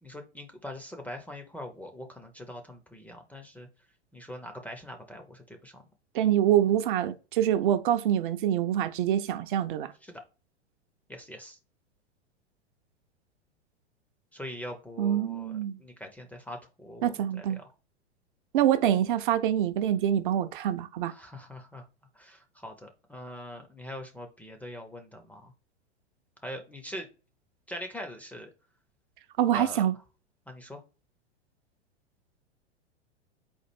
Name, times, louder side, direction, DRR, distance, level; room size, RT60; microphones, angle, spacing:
voice 1, 0.0-3.7 4.1-5.8 10.0-10.2 11.1-11.6 14.3-17.6 21.0-21.9 22.1-25.5 26.4-27.1 27.7-28.5 29.5-29.9 30.5-30.8, left 1 dB, 5° left, 0.5 m, -42 dB
voice 2, 6.1-9.9 15.0-15.8 17.0-17.6 18.5-21.1 29.4-29.9, right 10 dB, 45° right, 0.5 m, -25 dB
4.3 x 2.4 x 4.3 m
figure-of-eight pair, 100°, 34 cm